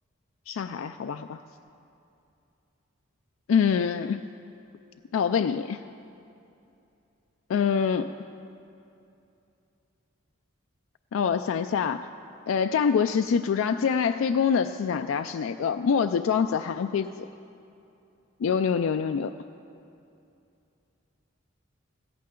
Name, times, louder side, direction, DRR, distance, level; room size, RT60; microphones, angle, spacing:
voice 1, 0.5-1.4 3.5-4.2 5.1-5.8 7.5-8.1 11.1-12.1 12.5-17.1 18.4-19.3, left 6 dB, 80° left, 8 dB, 0.3 m, -25 dB
16.0 x 14.0 x 3.8 m, 2.7 s
head